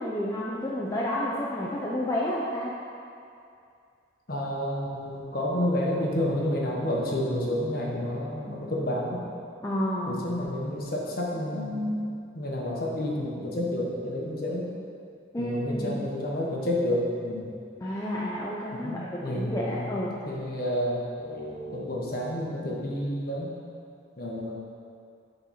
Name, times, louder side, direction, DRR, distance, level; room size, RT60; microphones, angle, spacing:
voice 1, 0.0-2.7 9.6-10.2 15.3-16.0 17.8-20.2, left 1 dB, 15° left, -6 dB, 0.5 m, -30 dB
voice 2, 4.3-9.2 10.1-12.1 12.3-14.7 15.4-17.5 18.8-19.9 20.3-23.5 24.2-24.6, left 1 dB, 50° left, -3 dB, 1.2 m, -30 dB
7.7 x 3.9 x 5.7 m, 2.4 s
head